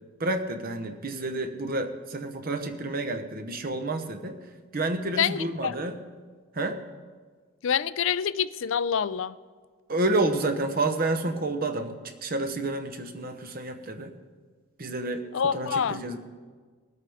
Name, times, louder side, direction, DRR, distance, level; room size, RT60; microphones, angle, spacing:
voice 1, 0.2-4.4 4.7-6.0 6.5-6.8 9.9-14.1 14.8-16.2, right 2 dB, 40° right, 8 dB, 0.8 m, -29 dB
voice 2, 5.2-5.7 7.6-9.3 15.3-16.0, left 7 dB, 60° left, 16 dB, 0.4 m, -26 dB
21.0 x 8.3 x 3.5 m, 1.5 s
head